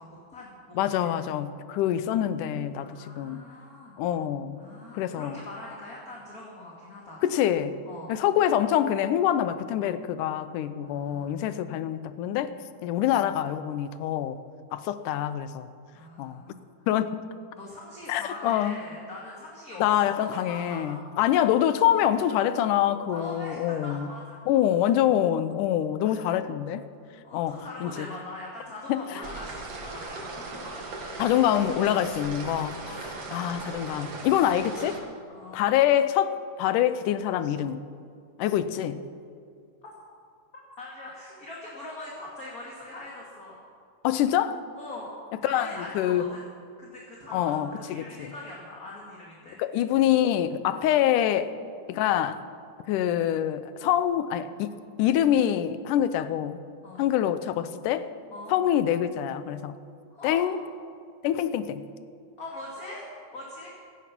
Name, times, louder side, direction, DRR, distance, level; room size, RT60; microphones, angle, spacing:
voice 1, 0.0-1.1 2.7-3.9 4.6-7.2 7.8-8.2 10.8-11.6 15.9-16.6 17.6-21.0 23.1-24.6 26.0-26.3 27.2-30.9 32.8-33.2 35.3-35.7 40.5-43.6 44.7-45.1 45.4-46.4 46.8-49.6 56.8-57.0 58.3-58.5 60.1-60.5 62.4-63.1 63.3-63.7, left 2 dB, 30° left, -4 dB, 2.4 m, -42 dB
voice 2, 0.8-3.4 4.0-4.6 4.9-5.4 7.2-7.7 8.1-12.5 12.8-14.4 14.7-15.7 16.2-16.4 16.9-17.2 18.1-18.8 19.8-24.1 24.5-26.8 27.3-28.1 28.9-29.2 31.2-32.8 33.3-35.0 35.5-37.8 38.4-39.0 44.0-44.6 45.4-46.3 47.3-48.3 49.6-51.5 51.9-52.4 52.9-54.7 55.0-56.6 57.0-58.1 58.5-59.7 60.2-60.6 61.2-61.8, left 11 dB, 85° left, 13 dB, 2.3 m, -25 dB
sound 1, 29.2-35.0, right 3 dB, 50° right, 2.9 m, -38 dB
17.0 x 14.0 x 6.0 m, 2.3 s
omnidirectional pair, 3.6 m